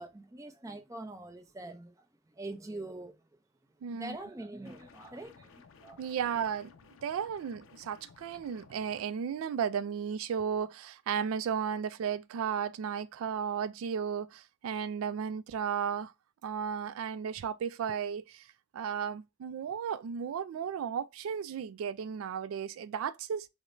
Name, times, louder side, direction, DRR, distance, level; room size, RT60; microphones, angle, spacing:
voice 1, 0.0-1.9 2.4-3.2 3.9-6.0, right 2 dB, 15° right, 0.5 m, -44 dB
voice 2, 3.8-4.2 6.0-6.7 7.0-16.1 16.4-18.5 18.7-23.5, right 7 dB, 75° right, 0.3 m, -34 dB
sound 1, 4.7-9.0, left 5 dB, 65° left, 0.4 m, -57 dB
4.7 x 2.1 x 2.5 m
head